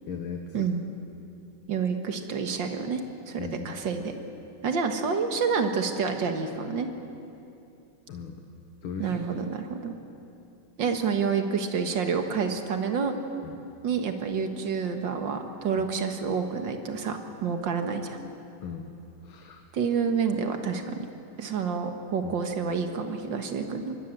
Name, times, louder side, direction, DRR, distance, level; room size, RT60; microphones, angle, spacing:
voice 1, 0.1-0.7 3.4-3.7 8.1-8.4 8.8-9.2 13.4-13.5 15.8-15.9 18.6-18.9 19.2-19.6 22.2-22.4, left 6 dB, 80° left, 4 dB, 2.2 m, -37 dB
voice 2, 1.7-4.1 4.6-6.9 9.0-9.9 10.8-13.2 13.8-18.2 19.7-21.1 21.4-24.0, right 5 dB, 65° right, 6 dB, 2.2 m, -28 dB
25.0 x 20.5 x 7.6 m, 2.8 s
omnidirectional pair, 2.2 m